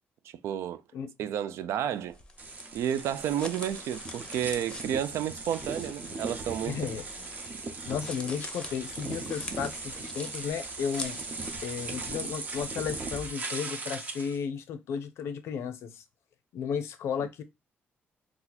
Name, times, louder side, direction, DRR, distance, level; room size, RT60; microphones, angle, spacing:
voice 1, 0.4-0.8 1.2-2.2 2.7-6.8, right 10 dB, 90° right, 0.3 m, -31 dB
sound 1, 1.9-12.0, left 2 dB, 20° left, 0.6 m, -45 dB
sound 2, 2.4-14.4, right 3 dB, 35° right, 0.7 m, -38 dB
voice 2, 6.7-7.0 7.9-11.2 11.6-16.0 16.5-17.4, left 7 dB, 85° left, 0.5 m, -34 dB
2.8 x 2.4 x 3.9 m
cardioid pair, 130°, 4 cm